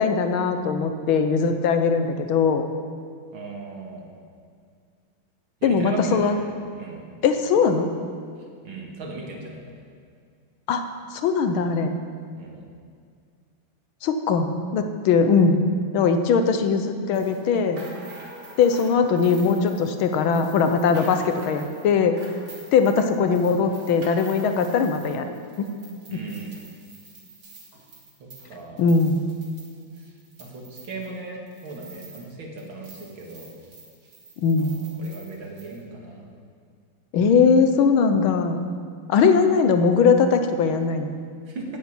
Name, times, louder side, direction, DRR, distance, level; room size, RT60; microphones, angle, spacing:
voice 1, 0.0-2.7 5.6-6.3 7.2-7.9 10.7-10.8 11.1-11.9 14.0-15.6 15.9-17.8 18.6-22.2 22.7-25.3 25.6-25.7 26.1-26.2 28.8-29.3 34.4-34.8 37.1-38.6 39.1-41.1, left 5 dB, 80° left, 7 dB, 1.7 m, -20 dB
voice 2, 3.3-4.1 5.6-6.5 6.8-7.1 8.6-9.8 12.3-12.7 26.1-26.6 28.2-28.9 29.9-30.1 30.4-33.5 34.6-36.3 41.5-41.6, right 3 dB, 70° right, -1 dB, 2.7 m, -37 dB
sound 1, 17.1-32.3 32.6-35.8, right 2 dB, 55° right, 2.6 m, -47 dB
10.5 x 8.5 x 8.7 m, 2.2 s
omnidirectional pair, 2.3 m